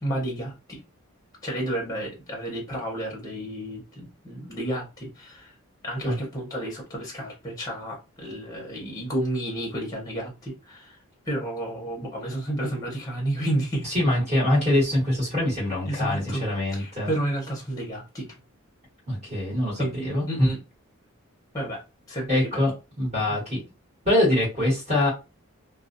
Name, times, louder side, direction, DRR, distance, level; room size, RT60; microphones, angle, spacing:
voice 1, 0.0-0.8 1.4-5.5 5.8-11.0 11.2-13.9 15.9-16.4 16.7-18.3 19.8-20.6 21.5-21.8 22.1-22.6, right 1 dB, 15° left, 0.7 m, -31 dB
voice 2, 13.8-17.1 19.1-20.5 22.3-22.7 23.0-23.6 24.0-25.1, left 1 dB, 30° right, 1.2 m, -24 dB
2.4 x 2.2 x 2.5 m
head